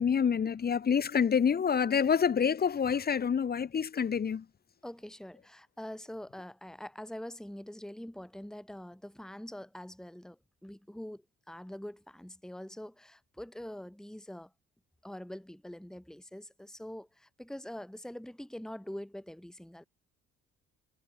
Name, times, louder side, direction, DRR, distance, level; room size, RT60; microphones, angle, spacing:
voice 1, 0.0-4.5, left 7 dB, 30° left, 0.7 m, -27 dB
voice 2, 4.8-14.5 15.0-19.8, left 1 dB, ahead, 2.1 m, -44 dB
cardioid pair, 90°, 30 cm